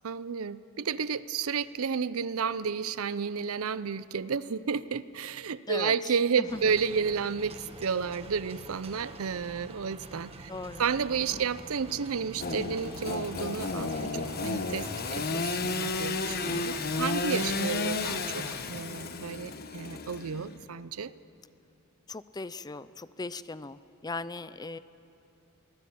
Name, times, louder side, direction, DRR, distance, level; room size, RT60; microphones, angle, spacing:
voice 1, 0.0-10.5 10.8-21.1, right 6 dB, 75° right, 17 dB, 0.6 m, -31 dB
voice 2, 5.7-6.1 6.4-6.7 10.5-10.8 11.3-11.4 22.1-24.8, left 3 dB, 20° left, 15 dB, 0.5 m, -38 dB
sound 1, 6.5-18.7, right 2 dB, 30° right, 1.5 m, -46 dB
Engine / Sawing, 12.4-20.6, left 3 dB, 45° left, 1.1 m, -32 dB
23.5 x 18.0 x 8.6 m, 2.7 s
head